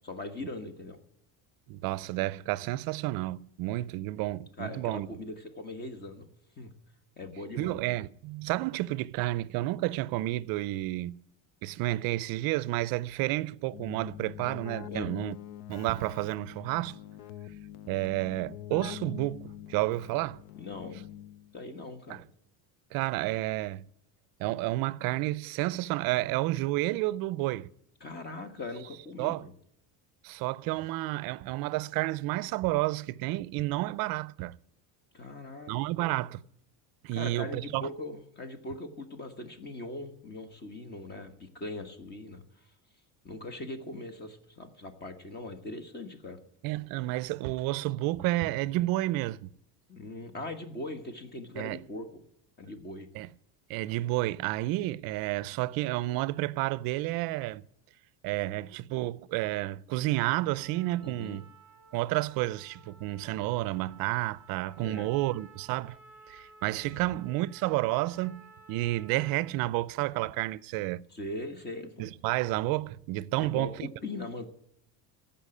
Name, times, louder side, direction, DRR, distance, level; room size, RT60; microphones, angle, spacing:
voice 1, 0.0-1.0 4.6-6.3 6.6-6.7 7.2-7.8 14.9-15.1 20.6-21.0 21.5-22.2 28.0-29.5 35.1-35.7 36.0-36.2 37.1-42.6 43.2-46.4 49.9-52.2 52.6-53.1 61.0-61.4 64.8-65.1 66.8-67.1 71.1-72.1 73.4-74.5, left 2 dB, 25° left, 1.5 m, -40 dB
voice 2, 1.7-5.1 7.6-11.2 11.6-15.4 15.7-17.0 17.9-20.4 22.1-22.2 22.9-23.8 24.4-27.7 29.2-29.4 30.2-34.6 35.7-36.4 37.0-37.9 46.6-49.5 51.6-51.8 53.1-53.3 53.7-57.6 58.2-61.5 61.9-66.0 66.3-71.0 72.0-73.9, right 17 dB, 55° right, 0.5 m, -31 dB
Keyboard (musical), 13.7-21.6, left 12 dB, 70° left, 0.7 m, -44 dB
Trumpet, 60.1-69.6, right 4 dB, 5° right, 4.2 m, -56 dB
15.0 x 5.7 x 9.9 m
cardioid pair, 155°, 43 cm